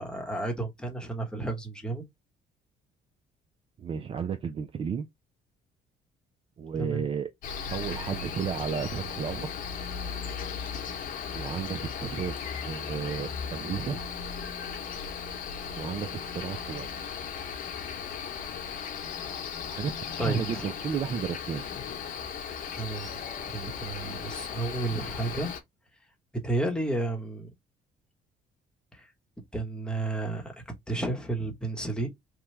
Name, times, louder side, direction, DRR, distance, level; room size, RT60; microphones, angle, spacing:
voice 1, 0.0-2.0 6.8-7.0 20.2-20.7 22.8-23.2 23.5-25.5 26.4-27.5 29.5-30.4 30.9-32.1, right 2 dB, 5° left, 1.0 m, -32 dB
voice 2, 3.8-5.1 6.6-7.3 7.7-9.5 11.3-14.0 15.8-16.9 19.7-19.9 20.2-21.6 24.1-24.3, right 7 dB, 35° right, 0.3 m, -33 dB
Cricket, 7.4-25.6, left 6 dB, 55° left, 0.9 m, -36 dB
2.9 x 2.2 x 3.1 m
cardioid pair, 110°, 17 cm